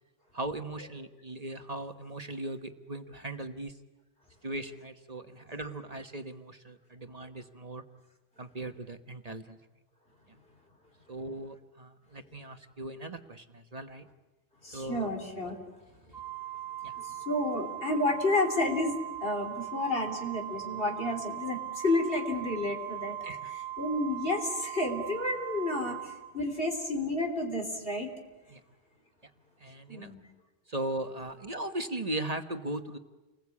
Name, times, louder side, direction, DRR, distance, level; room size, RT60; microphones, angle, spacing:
voice 1, 0.3-3.7 4.4-7.8 8.4-9.6 11.1-14.1 14.7-15.1 16.1-16.2 16.8-16.9 23.2-23.5 28.5-28.6 29.6-30.1 30.7-33.0, right 2 dB, 35° right, 7 dB, 1.3 m, -38 dB
voice 2, 14.6-15.6 17.0-28.1 29.9-30.2, left 2 dB, 60° left, 3 dB, 3.6 m, -31 dB
Organ, 16.1-26.9, right 13 dB, ahead, 1.5 m, -40 dB
29.5 x 21.0 x 8.5 m, 1.1 s
omnidirectional pair, 1.1 m